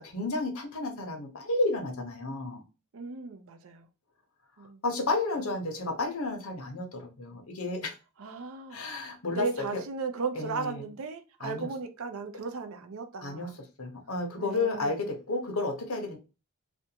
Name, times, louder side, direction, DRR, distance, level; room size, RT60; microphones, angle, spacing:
voice 1, 0.0-2.6 4.8-7.9 8.7-9.8 10.4-10.7 11.4-11.7 13.2-13.5 13.8-16.2, left 2 dB, 75° left, 0.8 m, -32 dB
voice 2, 2.9-3.9 4.6-4.8 8.2-13.6 14.4-15.0, right 4 dB, 70° right, 0.5 m, -36 dB
2.5 x 2.2 x 2.8 m
head